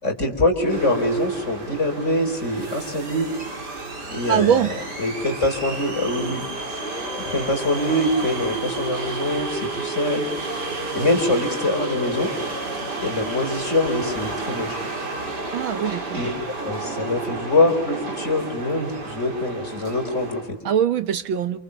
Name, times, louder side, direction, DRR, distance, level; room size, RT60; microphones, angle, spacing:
voice 1, 0.0-3.3 4.1-4.6 5.0-6.5 7.2-10.3 10.9-12.3 13.0-14.8 16.1-16.3 16.6-20.6, left 1 dB, 35° left, 4 dB, 4.8 m, -24 dB
sound 1, 0.6-20.5, right 2 dB, 55° right, 4.5 m, -31 dB
voice 2, 4.3-4.7 15.5-16.3 20.6-21.6, right 9 dB, 85° right, 11 dB, 2.1 m, -22 dB
Guitar, 6.8-10.6, left 3 dB, 20° right, 8.3 m, -41 dB
28.5 x 28.0 x 7.0 m, 0.72 s
omnidirectional pair, 2.1 m